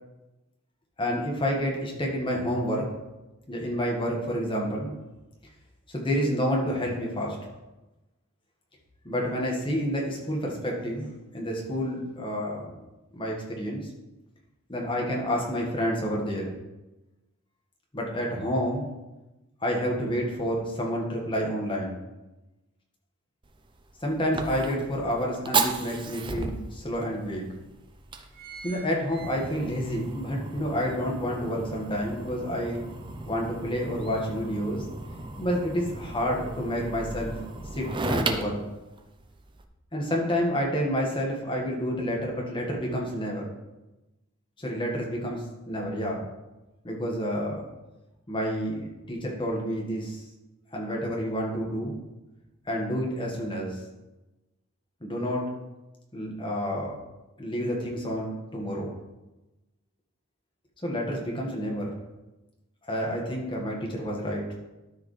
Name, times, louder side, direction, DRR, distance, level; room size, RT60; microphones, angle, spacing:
voice 1, 1.0-2.9 3.5-5.0 5.9-7.4 9.0-11.1 11.3-12.7 13.1-13.9 14.7-16.6 17.9-18.9 19.6-22.0 24.0-27.4 28.6-32.8 33.3-34.9 35.4-37.3 37.7-38.6 39.9-43.5 44.6-46.3 46.8-47.6 48.3-50.2 50.7-52.0 52.7-53.8 55.0-55.5 56.1-57.0 57.4-58.9 60.8-61.9 62.9-64.4, equal, 25° left, -1 dB, 1.6 m, -29 dB
Fire, 23.4-39.6, right 3 dB, 25° right, 0.5 m, -35 dB
sound 1, 27.6-27.8 28.1-29.9 30.3-30.4, right 6 dB, 50° right, 2.5 m, -46 dB
12.5 x 4.9 x 3.3 m, 1.0 s
head